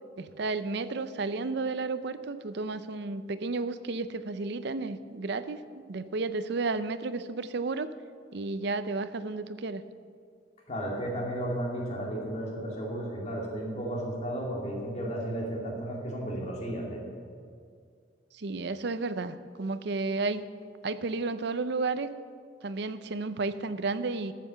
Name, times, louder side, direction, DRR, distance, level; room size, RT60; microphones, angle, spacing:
voice 1, 0.2-7.9 8.3-9.8 18.3-20.5 20.8-22.1 22.6-24.3, right 3 dB, 65° right, 12 dB, 0.6 m, -32 dB
voice 2, 10.7-17.0, right 1 dB, 40° left, -2 dB, 2.4 m, -33 dB
13.0 x 7.6 x 6.8 m, 2.2 s
head